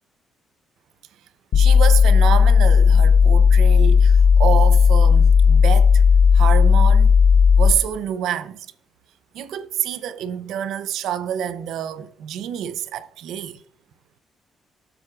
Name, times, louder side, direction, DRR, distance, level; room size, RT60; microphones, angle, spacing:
sound 1, 1.5-7.7, left 6 dB, 70° left, 1.1 m, -13 dB
voice 1, 1.5-6.0 6.3-7.1 7.6-8.7 9.3-13.6, right 10 dB, 85° right, 0.6 m, -27 dB
19.0 x 7.6 x 2.4 m
cardioid pair, 90°, 0 cm